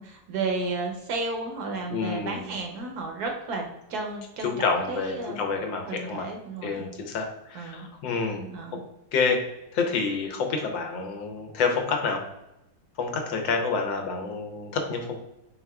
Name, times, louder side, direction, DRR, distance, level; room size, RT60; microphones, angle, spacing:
voice 1, 0.0-5.4 5.9-6.8 7.5-7.9 8.5-8.8, right 3 dB, 65° right, 2 dB, 1.1 m, -33 dB
voice 2, 1.9-2.5 4.4-6.3 6.6-8.5 9.1-9.4 9.7-12.2 13.0-15.2, left 4 dB, 90° left, 3 dB, 1.5 m, -28 dB
4.7 x 3.5 x 2.3 m, 0.91 s
omnidirectional pair, 2.0 m